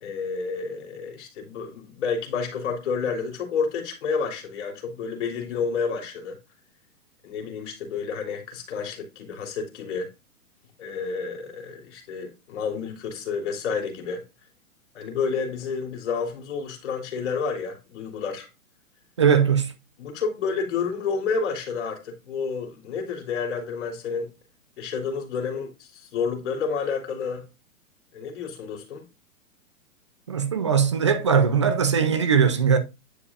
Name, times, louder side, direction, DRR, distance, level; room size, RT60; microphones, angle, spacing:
voice 1, 0.0-6.4 7.2-10.1 10.8-14.2 14.9-18.5 20.0-24.3 24.8-27.5 28.1-29.0, left 5 dB, 50° left, 3.1 m, -30 dB
voice 2, 19.2-19.7 30.3-32.8, right 6 dB, 20° right, 0.4 m, -20 dB
9.8 x 5.0 x 2.4 m
hypercardioid pair, 160°, 43 cm